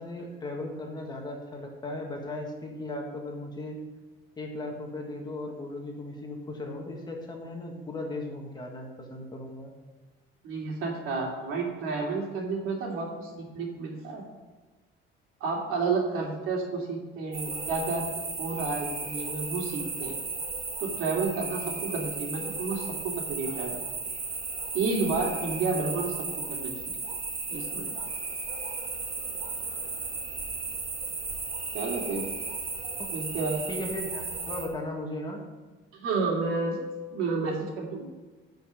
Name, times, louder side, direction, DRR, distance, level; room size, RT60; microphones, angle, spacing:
voice 1, 0.0-3.8 4.4-9.7 33.0-33.1 33.7-35.4, left 2 dB, 20° left, 1 dB, 1.5 m, -37 dB
voice 2, 10.4-14.2 15.4-18.0 18.4-20.2 20.8-23.8 24.7-26.2 26.5-27.0 27.5-27.8 31.7-32.3 33.1-33.7 35.9-36.8 37.1-38.1, right 4 dB, 80° right, -1 dB, 2.7 m, -31 dB
sound 1, 17.3-34.7, right 4 dB, 30° right, 1.4 m, -35 dB
11.0 x 5.3 x 6.4 m, 1.3 s
cardioid pair, 165°, 21 cm